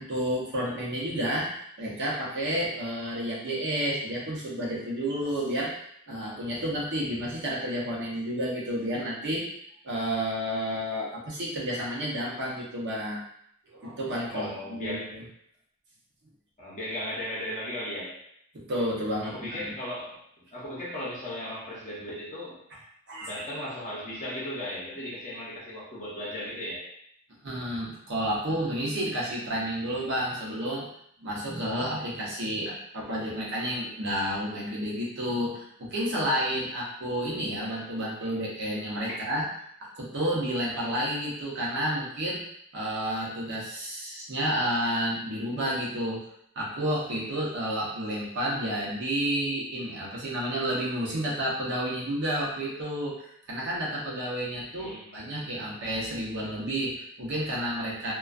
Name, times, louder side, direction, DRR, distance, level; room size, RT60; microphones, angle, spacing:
voice 1, 0.0-5.7 6.1-9.5 9.8-13.2 13.6-15.2 18.7-19.7 23.1-23.3 27.4-30.9 31.2-39.4 39.8-42.4 42.7-46.2 46.5-58.1, equal, 50° right, -5 dB, 0.7 m, -30 dB
voice 2, 14.3-15.1 16.6-18.2 19.2-20.2 20.5-22.6 23.2-26.9 39.1-39.2 54.8-55.8, left 1 dB, 35° left, -6 dB, 0.7 m, -36 dB
2.4 x 2.2 x 2.4 m, 0.70 s
head